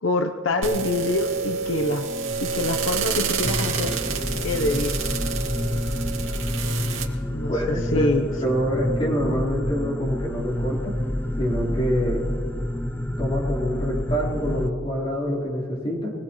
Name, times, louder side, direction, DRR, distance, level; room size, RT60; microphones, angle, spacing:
voice 1, 0.0-2.1 2.4-4.0 4.4-5.0 7.3-8.3, left 2 dB, 80° left, 6 dB, 0.8 m, -25 dB
sound 1, 0.6-7.0, right 5 dB, 85° right, 2.3 m, -28 dB
sound 2, 3.4-14.7, left 1 dB, 10° left, 0.4 m, -28 dB
voice 2, 7.5-8.1 8.4-10.9 11.4-12.2 13.0-16.1, equal, 30° left, -4 dB, 3.8 m, -26 dB
24.0 x 18.5 x 3.1 m, 2.1 s
head